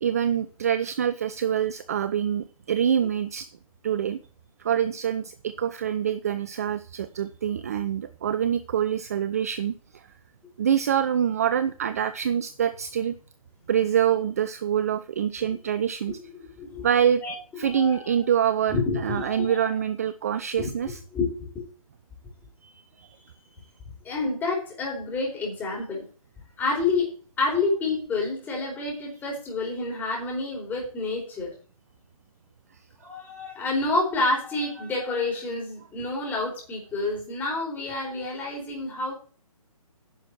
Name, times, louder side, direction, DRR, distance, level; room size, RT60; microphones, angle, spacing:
voice 1, 0.0-3.5 3.8-4.2 4.6-9.8 10.6-13.1 13.7-16.2 16.8-17.2 17.6-21.0 22.6-22.7 23.0-23.2, right 9 dB, 25° right, 13 dB, 0.4 m, -25 dB
voice 2, 16.2-16.9 17.2-17.3 17.6-18.1 18.7-19.7 20.6-20.7 21.1-21.7 24.0-26.0 26.6-31.5 33.0-39.1, left 3 dB, 10° left, -2 dB, 4.3 m, -29 dB
10.5 x 6.2 x 7.8 m, 0.40 s
figure-of-eight pair, 140°, 19 cm